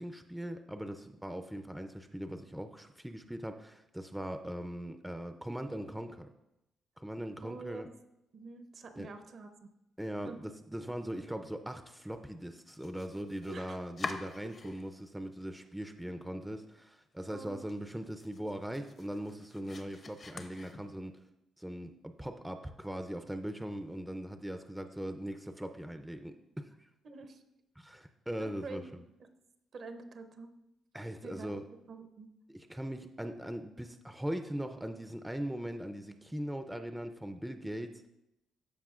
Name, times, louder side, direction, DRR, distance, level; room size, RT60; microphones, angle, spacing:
voice 1, 0.0-6.3 7.0-7.9 9.0-9.1 10.0-21.2 21.6-26.9 27.8-29.0 30.9-31.6 32.5-38.1, equal, 5° right, 7 dB, 0.5 m, -40 dB
voice 2, 7.4-7.9 8.3-9.5 10.2-10.4 13.5-13.8 17.3-17.6 27.0-27.4 28.4-28.9 29.7-30.5 31.2-31.5 31.9-32.3, right 4 dB, 55° right, 7 dB, 0.7 m, -46 dB
Domestic sounds home sounds, 12.5-15.1 15.4-16.1 16.5-16.6 17.0-17.1 17.5-21.2, left 4 dB, 40° left, 0.7 m, -46 dB
13.5 x 4.8 x 2.4 m, 0.90 s
cardioid pair, 90°, 0 cm